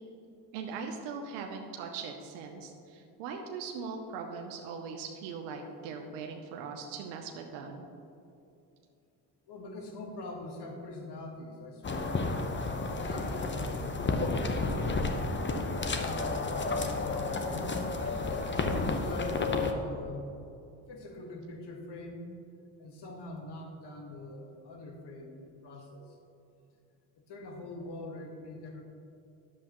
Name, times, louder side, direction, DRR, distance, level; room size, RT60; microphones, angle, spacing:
voice 1, 0.5-7.8, right 5 dB, 85° right, 3 dB, 0.8 m, -40 dB
voice 2, 9.5-12.1 12.9-15.6 15.9-17.8 18.6-20.2 20.9-22.2 22.8-26.1 27.3-28.8, left 2 dB, 55° left, 2 dB, 1.5 m, -43 dB
sound 1, 11.8-19.7, left 3 dB, 25° left, 0.8 m, -31 dB
9.8 x 7.4 x 3.0 m, 2.7 s
supercardioid pair, 60°, 47 cm